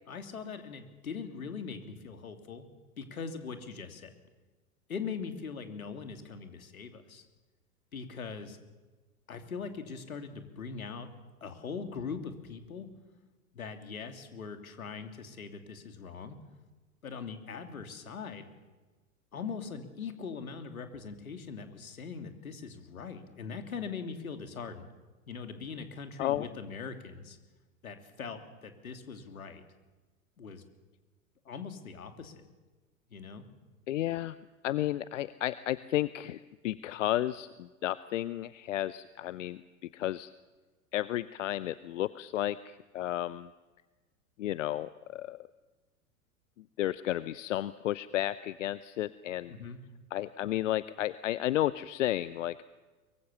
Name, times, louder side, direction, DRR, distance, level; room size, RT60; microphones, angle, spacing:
voice 1, 0.1-2.6 3.0-4.1 4.9-7.2 7.9-8.6 9.3-11.1 11.4-12.9 13.5-16.4 17.0-18.4 19.3-24.9 25.3-27.4 27.8-29.6 30.4-30.6 31.4-32.5 33.1-33.4 49.5-49.8, left 5 dB, 75° left, 7 dB, 3.0 m, -41 dB
voice 2, 33.9-34.4 34.6-39.6 39.9-40.3 40.9-43.5 44.4-45.4 46.8-49.5 50.1-52.6, left 13 dB, 60° left, 17 dB, 0.8 m, -32 dB
23.5 x 23.5 x 7.1 m, 1.2 s
figure-of-eight pair, 90°, 43 cm